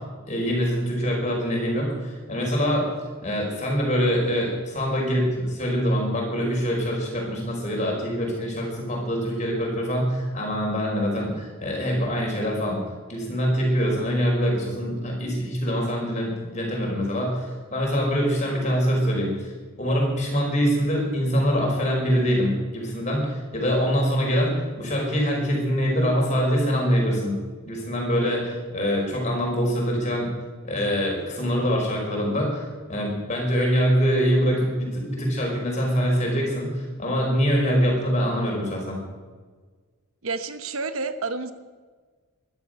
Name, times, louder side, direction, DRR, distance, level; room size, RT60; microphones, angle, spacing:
voice 1, 0.3-2.9 3.2-12.8 13.1-19.3 19.8-27.4 27.6-30.3 30.7-39.0, equal, 30° left, -1 dB, 5.3 m, -24 dB
voice 2, 40.2-41.5, right 3 dB, 70° right, 10 dB, 1.0 m, -29 dB
14.0 x 12.5 x 6.7 m, 1.4 s
head